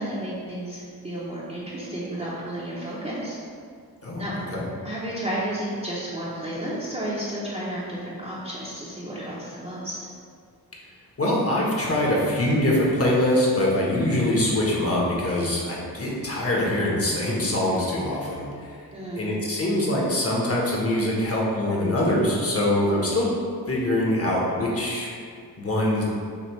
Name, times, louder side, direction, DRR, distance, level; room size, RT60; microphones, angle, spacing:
voice 1, 0.0-3.4 4.2-4.3 4.8-10.0 18.9-19.3, right 1 dB, 15° right, -8 dB, 0.7 m, -32 dB
voice 2, 4.0-4.6 11.2-18.8 19.2-23.3 23.7-25.1 25.6-26.0, left 1 dB, 35° left, -4 dB, 1.1 m, -23 dB
7.1 x 2.5 x 3.1 m, 2.2 s
wide cardioid pair, 95°, 38 cm